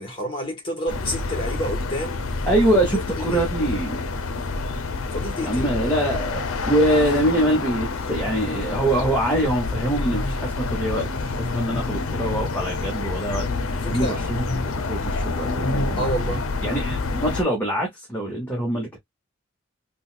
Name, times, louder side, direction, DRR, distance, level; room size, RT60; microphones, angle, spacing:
voice 1, 0.0-2.2 3.2-3.7 5.1-5.7 11.4-11.7 13.7-14.2 16.0-16.4, equal, 25° left, 1.4 m, -29 dB
sound 1, 0.9-17.4, left 3 dB, 85° left, 0.6 m, -27 dB
voice 2, 2.4-4.0 5.4-19.0, right 1 dB, 10° left, 1.0 m, -24 dB
3.9 x 2.3 x 2.4 m
head